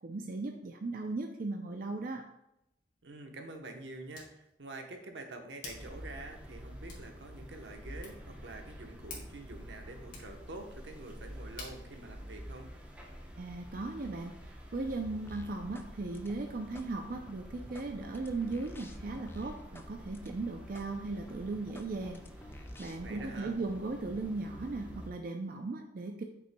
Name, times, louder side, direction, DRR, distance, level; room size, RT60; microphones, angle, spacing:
voice 1, 0.0-2.3 13.4-22.2 22.5-26.2, right 3 dB, 55° right, 4 dB, 0.5 m, -37 dB
Hands, 2.5-13.3, left 3 dB, 50° left, 2.0 m, -54 dB
voice 2, 3.0-12.7 23.0-23.6, right 2 dB, 85° right, 4 dB, 1.0 m, -47 dB
sound 1, 5.7-25.1, equal, 10° right, 0.9 m, -48 dB
sound 2, 15.3-15.9 16.1-16.9 17.3-19.9 20.1-20.3 20.7-20.9 21.3-23.2, left 1 dB, 15° left, 0.4 m, -52 dB
8.4 x 6.1 x 2.3 m, 0.82 s
head